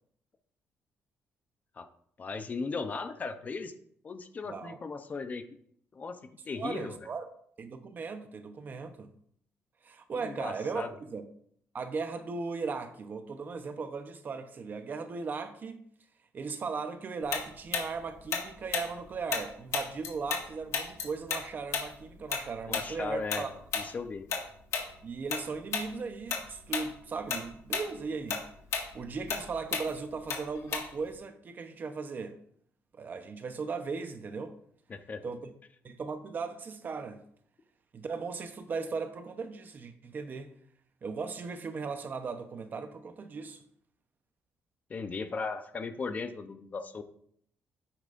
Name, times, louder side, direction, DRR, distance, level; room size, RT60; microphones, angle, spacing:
voice 1, 2.2-3.7 4.0-5.4 5.9-6.2 6.5-7.0 10.1-10.9 22.7-23.4 23.7-24.2 34.9-35.2 44.9-47.0, left 4 dB, 30° left, 0.7 m, -37 dB
voice 2, 4.4-4.8 6.5-7.3 7.6-9.1 9.8-11.3 11.7-15.8 16.3-23.5 25.0-28.4 28.9-32.4 32.9-34.5 35.2-35.5 35.8-37.2 37.9-40.5 41.0-43.6, right 4 dB, 40° right, 0.8 m, -37 dB
Tick-tock, 17.3-20.5 20.7-25.4 25.7-25.9 26.3-26.9 27.2-31.1, left 6 dB, 70° left, 1.8 m, -33 dB
10.0 x 8.6 x 2.6 m
cardioid pair, 140°, 5 cm